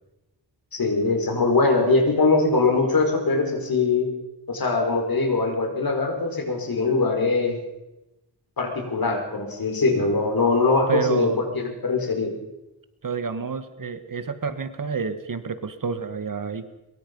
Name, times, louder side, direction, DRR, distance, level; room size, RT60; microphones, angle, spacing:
voice 1, 0.7-4.1 4.5-7.6 8.6-12.3, left 3 dB, 55° left, 3 dB, 5.0 m, -22 dB
voice 2, 10.9-11.4 13.0-16.7, right 6 dB, 50° right, 11 dB, 1.5 m, -29 dB
23.0 x 22.5 x 5.4 m, 0.99 s
wide cardioid pair, 105°, 43 cm